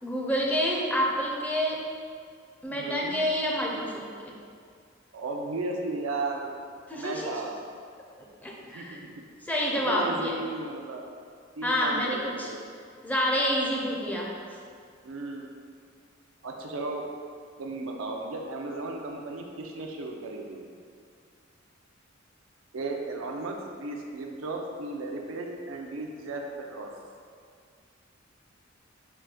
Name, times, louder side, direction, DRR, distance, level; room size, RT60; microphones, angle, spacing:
voice 1, 0.0-1.8 2.6-4.3 6.9-7.3 8.2-9.0 9.5-10.4 11.6-12.5 13.0-14.3, equal, 10° left, -3 dB, 0.5 m, -28 dB
voice 2, 2.7-3.2 5.1-6.5 6.9-7.6 8.6-9.2 9.9-11.1 11.6-12.6 15.0-15.5 16.4-17.1 17.6-20.6 22.7-26.9, right 2 dB, 90° right, 1 dB, 0.5 m, -35 dB
4.4 x 2.2 x 4.7 m, 2.1 s
head